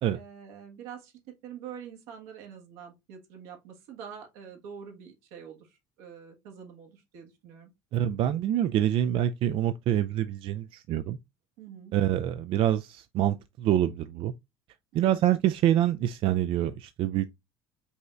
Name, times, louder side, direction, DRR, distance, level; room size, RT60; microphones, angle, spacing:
voice 1, 0.1-7.7 11.6-11.9 14.9-15.2, right 8 dB, 80° right, 1.4 m, -45 dB
voice 2, 7.9-11.2 11.9-14.3 14.9-17.3, right 11 dB, 55° right, 0.3 m, -26 dB
5.3 x 3.1 x 2.4 m
supercardioid pair, 90°, 11 cm